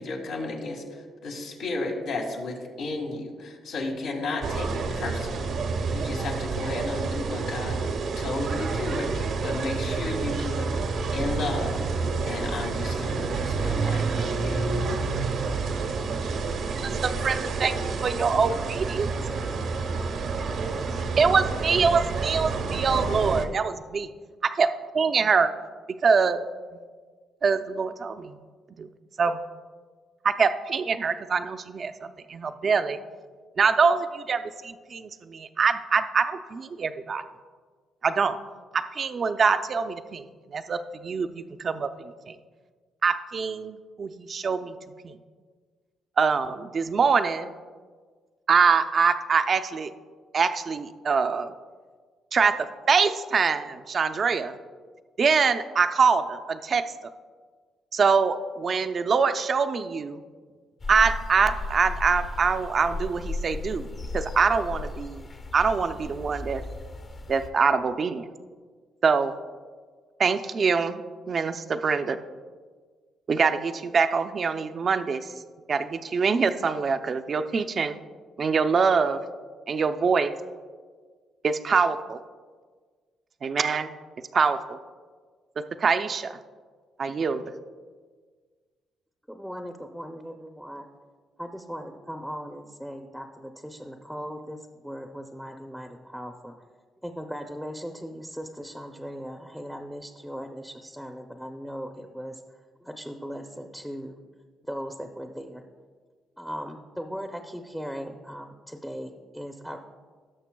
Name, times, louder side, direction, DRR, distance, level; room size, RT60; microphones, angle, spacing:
voice 1, 0.0-10.8 11.1-11.8 12.2-14.7, left 2 dB, 85° left, -1 dB, 1.8 m, -33 dB
sound 1, 4.4-23.5, right 4 dB, 65° right, 0.8 m, -29 dB
voice 2, 16.8-17.7 18.0-19.1 21.2-24.1 24.6-24.7 24.9-25.5 26.0-26.4 27.4-28.4 28.8-28.9 29.2-29.4 30.2-33.0 33.6-37.2 38.0-38.4 38.7-42.4 43.0-44.8 45.0-45.1 46.2-47.5 48.5-49.9 50.3-51.5 52.3-54.5 55.2-56.8 57.9-60.2 60.9-63.9 64.1-65.3 65.5-66.6 67.3-68.3 69.0-69.4 70.2-72.2 73.3-75.3 75.7-78.0 78.4-79.2 79.7-80.3 81.4-82.2 83.4-83.9 84.3-84.8 85.6-86.4 87.0-87.4, right 5 dB, 45° right, 9 dB, 0.5 m, -24 dB
sound 2, 60.8-67.5, left 2 dB, 45° left, 0.9 m, -35 dB
voice 3, 89.3-90.9 91.4-96.5 97.0-102.4 102.8-104.2 104.6-105.6 106.4-109.8, equal, ahead, 4 dB, 0.6 m, -38 dB
17.5 x 6.5 x 2.3 m, 1.5 s
cardioid pair, 90°, 0 cm